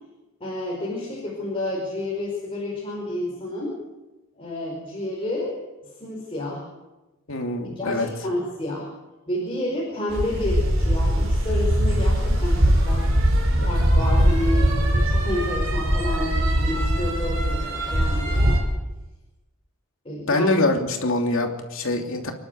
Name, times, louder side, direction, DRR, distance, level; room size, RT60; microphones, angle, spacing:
voice 1, 0.4-3.8 4.3-5.6 6.0-6.7 7.7-8.9 9.3-13.1 13.6-18.6 20.0-20.5, left 1 dB, 25° left, -3 dB, 5.1 m, -30 dB
voice 2, 7.3-8.1 13.6-13.7 20.3-22.3, left 2 dB, 65° left, 3 dB, 3.0 m, -24 dB
sound 1, 10.1-18.6, equal, 60° right, 4.9 m, -21 dB
28.0 x 12.0 x 8.3 m, 1.1 s
head